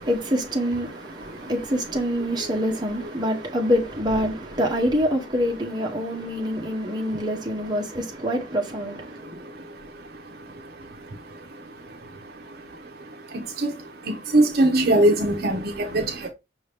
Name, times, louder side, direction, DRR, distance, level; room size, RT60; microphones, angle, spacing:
voice 1, 0.0-9.5, equal, 20° right, 0.9 m, -26 dB
voice 2, 0.9-1.6 1.9-2.0 2.3-3.5 5.9-7.2 7.6-7.7 8.9-16.3, right 1 dB, 55° right, 0.7 m, -27 dB
5.6 x 2.8 x 3.4 m
head